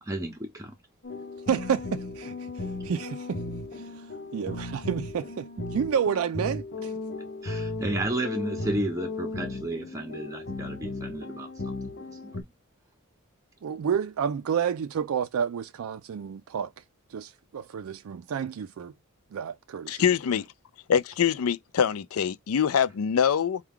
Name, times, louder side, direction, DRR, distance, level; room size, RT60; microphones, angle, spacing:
voice 1, 0.0-0.7 7.4-12.3, right 1 dB, 15° right, 0.6 m, -33 dB
sound 1, 1.0-12.4, left 2 dB, 50° left, 0.8 m, -36 dB
voice 2, 1.5-3.4 3.7-3.9 4.3-6.9 13.6-16.7 17.1-18.9 19.3-20.0, right 7 dB, 65° right, 0.3 m, -30 dB
voice 3, 19.9-20.4 20.9-23.6, left 7 dB, 70° left, 0.4 m, -24 dB
4.6 x 2.3 x 3.6 m
head